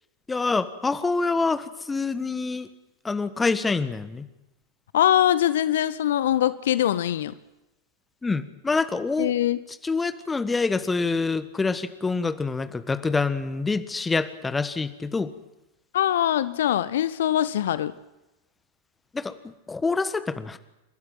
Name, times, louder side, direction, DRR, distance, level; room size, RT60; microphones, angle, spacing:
voice 1, 0.3-2.7 3.0-4.3 8.2-9.3 9.8-15.3 19.1-20.6, left 4 dB, 10° left, 12 dB, 1.3 m, -26 dB
voice 2, 4.9-7.3 9.2-9.6 15.9-17.9, left 11 dB, 60° left, 17 dB, 0.7 m, -22 dB
29.5 x 12.5 x 8.9 m, 0.98 s
figure-of-eight pair, 90°, 0 cm